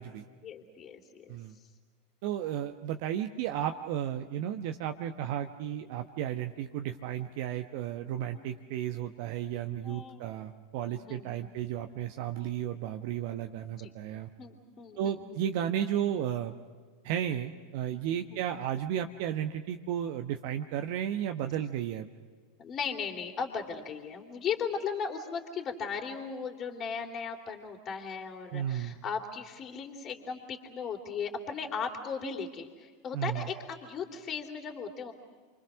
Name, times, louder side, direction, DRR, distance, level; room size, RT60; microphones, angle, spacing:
voice 1, 0.4-1.4 8.3-8.4 9.8-10.5 10.8-11.5 13.8-13.9 14.4-15.4 18.3-18.4 22.6-35.1, left 6 dB, 35° left, 2 dB, 3.2 m, -37 dB
voice 2, 2.2-14.3 15.0-16.5 17.0-22.1 28.5-29.0 33.1-33.4, right 10 dB, 55° right, 6 dB, 1.0 m, -33 dB
29.0 x 24.0 x 6.3 m, 1.5 s
hypercardioid pair, 90°, 0 cm